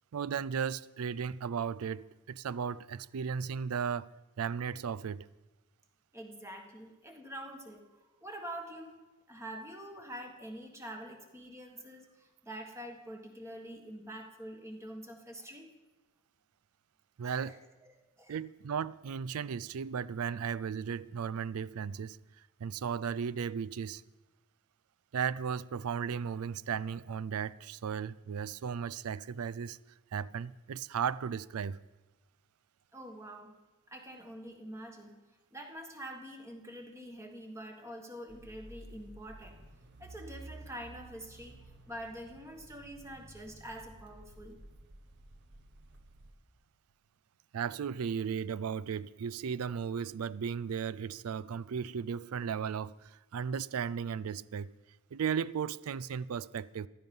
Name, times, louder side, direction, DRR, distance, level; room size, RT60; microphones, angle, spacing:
voice 1, 0.1-4.1 4.4-5.3 17.2-17.6 18.3-22.2 22.6-24.0 25.1-29.8 30.1-31.8 47.5-54.7 55.1-56.9, right 7 dB, 80° right, 0.4 m, -35 dB
voice 2, 6.1-9.0 9.3-15.7 17.2-18.3 32.9-33.5 33.9-35.1 35.5-39.6 40.0-41.6 41.9-44.6, right 1 dB, 15° right, 1.7 m, -46 dB
sound 1, 38.3-46.3, right 1 dB, 55° right, 1.3 m, -53 dB
15.0 x 12.0 x 5.5 m
head